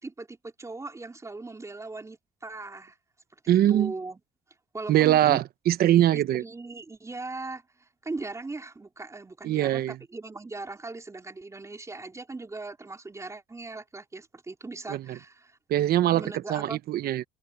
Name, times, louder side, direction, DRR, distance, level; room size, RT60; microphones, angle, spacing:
voice 1, 0.0-3.0 3.4-4.2 4.7-5.4 6.1-15.6 16.1-16.8, right 3 dB, 15° right, 3.9 m, -39 dB
voice 2, 3.5-3.9 4.9-6.4 9.4-10.0 14.9-15.0 15.7-17.2, right 13 dB, 65° right, 1.0 m, -22 dB
cardioid pair, 110°, 17 cm